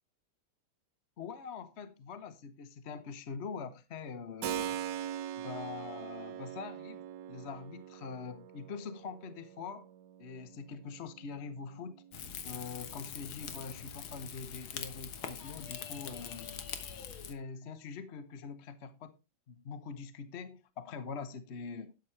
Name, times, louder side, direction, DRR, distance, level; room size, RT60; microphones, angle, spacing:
voice 1, 1.2-4.8 5.4-9.9 10.2-12.0 12.4-16.6 17.0-19.1 19.5-21.9, left 5 dB, 45° left, 1.0 m, -44 dB
Keyboard (musical), 4.4-13.0, right 10 dB, 70° right, 1.3 m, -43 dB
Rain / Fire, 12.1-17.3, left 8 dB, 85° left, 2.0 m, -43 dB
12.0 x 9.1 x 3.2 m
omnidirectional pair, 2.1 m